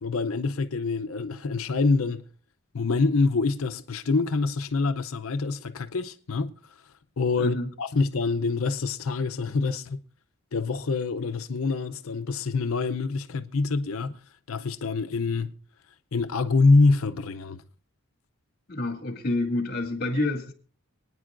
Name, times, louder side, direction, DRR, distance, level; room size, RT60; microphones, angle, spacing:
voice 1, 0.0-2.2 2.7-6.5 7.2-10.0 10.5-14.2 14.5-15.5 16.1-17.6, left 3 dB, 75° left, 0.6 m, -25 dB
voice 2, 7.4-7.7 18.7-20.5, left 2 dB, 45° left, 2.1 m, -28 dB
26.0 x 9.6 x 2.5 m
head